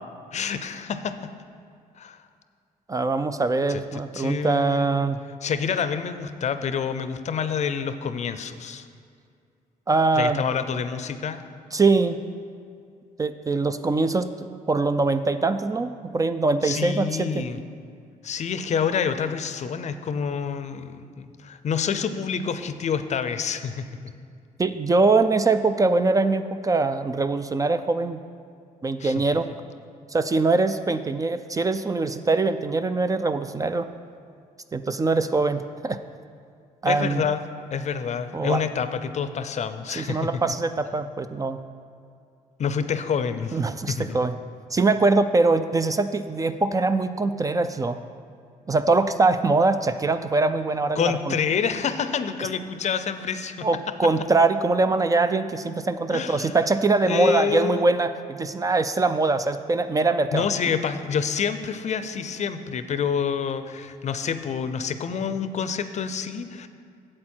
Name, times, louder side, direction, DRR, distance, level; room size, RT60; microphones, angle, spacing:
voice 1, 0.3-1.3 2.0-2.2 3.7-5.1 5.4-8.9 10.1-11.4 16.6-17.6 18.2-23.9 29.0-29.2 36.8-37.4 37.7-40.3 42.6-43.6 43.9-44.2 51.0-53.7 56.1-56.6 57.1-57.9 60.3-66.7, left 6 dB, 50° left, 11 dB, 0.5 m, -28 dB
voice 2, 2.9-5.2 9.9-10.4 11.7-12.2 13.2-14.3 14.7-17.5 24.6-28.2 28.8-29.5 30.1-33.9 34.7-36.0 36.8-37.2 38.3-38.6 40.0-41.6 43.5-44.3 44.7-48.0 48.7-51.4 53.6-60.5, right 3 dB, 25° right, 10 dB, 0.3 m, -23 dB
8.4 x 7.6 x 4.4 m, 2.4 s
cardioid pair, 95°, 15 cm